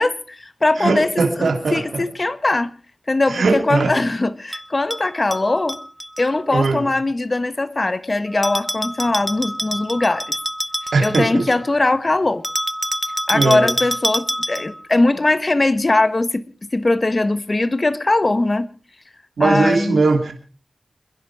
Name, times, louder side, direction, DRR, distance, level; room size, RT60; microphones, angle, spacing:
voice 1, 0.0-2.7 3.1-5.8 6.2-10.4 11.0-12.4 13.3-16.4 16.7-18.7 19.4-20.0, left 2 dB, 40° left, 1.4 m, -20 dB
voice 2, 0.8-2.0 3.3-3.9 6.5-6.8 10.9-11.5 13.3-13.7 19.4-20.3, right 3 dB, 90° right, 2.9 m, -19 dB
Bell, 4.5-6.3 8.4-11.7 12.4-14.8, equal, 5° right, 1.2 m, -26 dB
27.5 x 10.5 x 4.8 m
cardioid pair, 45°, 0 cm